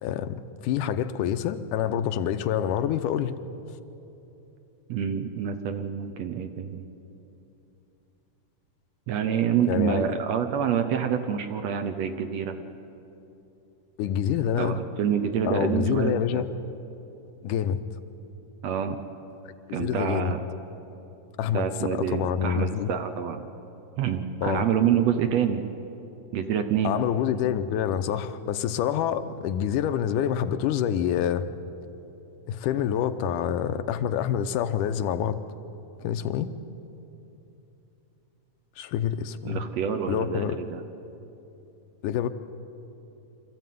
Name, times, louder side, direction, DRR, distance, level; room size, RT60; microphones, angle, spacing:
voice 1, 0.0-3.4 9.7-10.1 14.0-14.8 15.4-16.5 17.4-17.8 19.7-20.3 21.4-21.7 21.9-22.9 24.4-24.6 26.8-31.4 32.5-35.4 36.0-36.5 38.8-39.6 40.1-40.6 42.0-42.3, left 9 dB, 85° left, 10 dB, 2.3 m, -27 dB
voice 2, 4.9-6.9 9.1-12.6 14.6-16.5 18.6-19.0 19.7-20.4 21.5-23.4 24.0-25.7 26.3-27.0 39.5-40.9, right 8 dB, 70° right, 8 dB, 1.8 m, -27 dB
25.0 x 14.0 x 9.3 m, 2.9 s
omnidirectional pair, 3.7 m